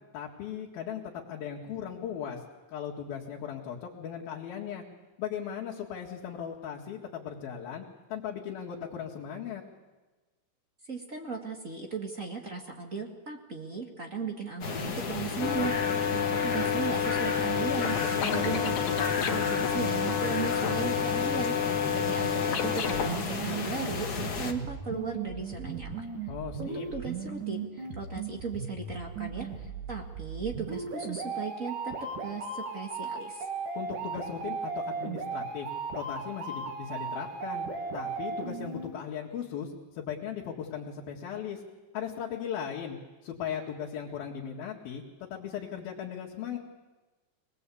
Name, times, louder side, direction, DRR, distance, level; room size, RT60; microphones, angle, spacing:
voice 1, 0.1-2.4 2.7-4.8 5.2-9.6 18.0-18.5 26.3-26.9 33.8-37.7 37.9-41.6 41.9-46.6, left 8 dB, 80° left, -3 dB, 3.8 m, -38 dB
voice 2, 10.9-18.0 18.2-26.0 26.6-31.9 32.2-33.5, right 4 dB, 30° right, 3 dB, 1.5 m, -37 dB
sound 1, 14.6-24.5, left 5 dB, 40° left, 1.6 m, -33 dB
sound 2, 15.4-23.1, left 8 dB, 60° left, 2.8 m, -29 dB
sound 3, 22.9-38.9, right 5 dB, 60° right, 3.9 m, -37 dB
25.0 x 19.5 x 8.5 m, 1.2 s
omnidirectional pair, 4.2 m